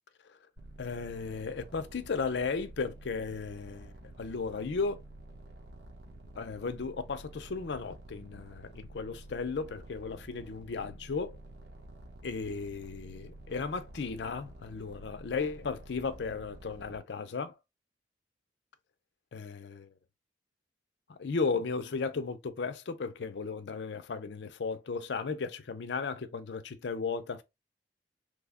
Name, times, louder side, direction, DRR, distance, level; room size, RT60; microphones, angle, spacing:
sound 1, 0.6-17.0, right 1 dB, 65° right, 0.8 m, -50 dB
voice 1, 0.8-5.0 6.4-11.4 12.2-17.6 19.3-19.9 21.1-27.4, left 4 dB, 75° left, 0.5 m, -35 dB
3.2 x 2.1 x 3.5 m
head